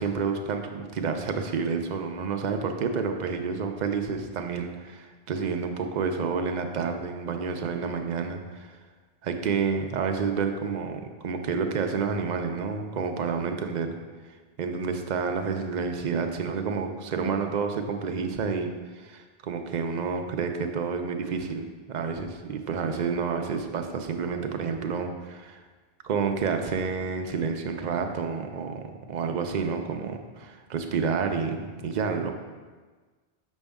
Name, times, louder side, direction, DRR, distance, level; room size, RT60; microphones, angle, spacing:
voice 1, 0.0-8.8 9.2-14.0 14.6-25.6 26.0-32.3, right 5 dB, 50° right, 5 dB, 0.6 m, -29 dB
6.2 x 5.3 x 3.5 m, 1.4 s
omnidirectional pair, 1.1 m